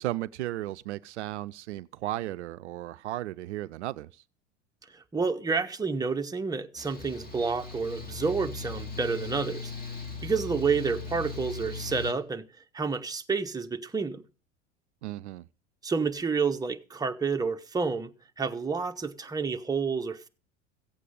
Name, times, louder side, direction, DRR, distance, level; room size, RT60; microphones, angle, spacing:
voice 1, 0.0-4.2 15.0-15.5, right 15 dB, 75° right, 0.5 m, -35 dB
voice 2, 4.9-9.7 10.2-12.4 12.7-14.2 15.8-18.1 18.4-20.3, right 5 dB, 10° right, 1.0 m, -29 dB
Mechanical fan, 6.8-12.1, left 4 dB, 25° left, 2.6 m, -39 dB
15.5 x 8.3 x 5.5 m
hypercardioid pair, 85°, 35 cm